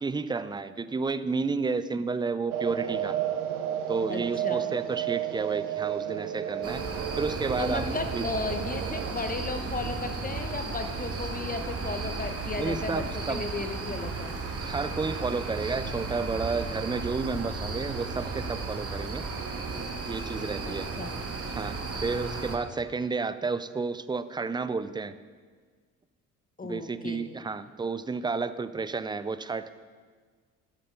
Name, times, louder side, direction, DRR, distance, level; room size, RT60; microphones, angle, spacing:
voice 1, 0.0-3.2 3.9-6.8 7.2-7.8 8.1-8.2 12.6-13.4 14.6-19.3 20.0-20.9 21.5-25.1 26.6-29.7, right 4 dB, 10° right, 14 dB, 0.4 m, -31 dB
sound 1, 2.5-9.1, right 11 dB, 75° right, 0.9 m, -32 dB
voice 2, 4.1-4.7 7.6-14.3 20.7-21.1 26.6-27.3, left 3 dB, 20° left, 7 dB, 1.3 m, -35 dB
sound 2, 6.6-22.6, right 3 dB, 30° right, 1.8 m, -34 dB
13.0 x 9.8 x 3.9 m, 1.5 s
figure-of-eight pair, 50°, 44 cm